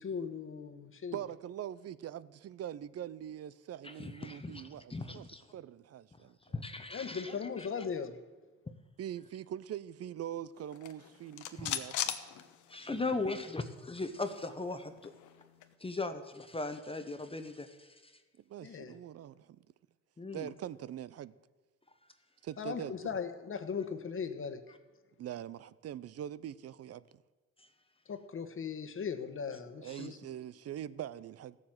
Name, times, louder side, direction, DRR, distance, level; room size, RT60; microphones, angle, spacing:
voice 1, 0.0-1.2 6.9-8.2 18.6-18.9 22.6-24.6 28.1-30.2, left 6 dB, 45° left, 1.3 m, -38 dB
voice 2, 1.1-5.3 5.5-6.4 9.0-12.1 12.9-13.2 18.5-19.6 20.3-21.3 22.4-23.1 25.2-27.2 29.8-31.6, right 11 dB, 55° right, 0.6 m, -43 dB
voice 3, 3.8-5.4 6.5-7.7 11.6-11.8 12.7-15.1 15.8-18.1 20.2-20.5 29.9-30.1, left 3 dB, 20° left, 0.9 m, -38 dB
sound 1, 10.7-13.1 13.4-13.5 13.8-15.7, left 10 dB, 80° left, 1.0 m, -40 dB
15.5 x 7.5 x 7.8 m
cardioid pair, 90°, 30 cm